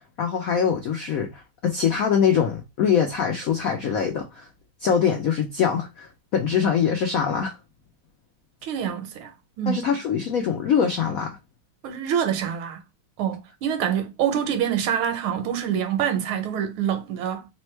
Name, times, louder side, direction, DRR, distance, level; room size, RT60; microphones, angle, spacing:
voice 1, 0.2-4.5 4.8-7.6 9.7-11.4, left 7 dB, 80° left, 0.7 m, -23 dB
voice 2, 8.6-9.8 11.8-12.8 13.2-17.5, right 9 dB, 85° right, 1.6 m, -26 dB
3.5 x 2.2 x 4.3 m
omnidirectional pair, 2.3 m